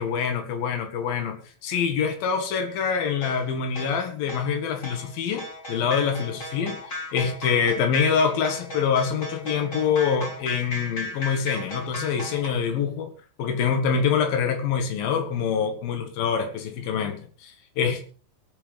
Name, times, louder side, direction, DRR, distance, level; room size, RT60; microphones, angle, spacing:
voice 1, 0.0-6.8 7.1-13.1 13.4-18.1, left 6 dB, 70° left, 6 dB, 3.5 m, -25 dB
sound 1, 3.2-12.5, left 1 dB, 25° left, 2.6 m, -36 dB
22.0 x 9.2 x 3.5 m, 0.40 s
omnidirectional pair, 4.4 m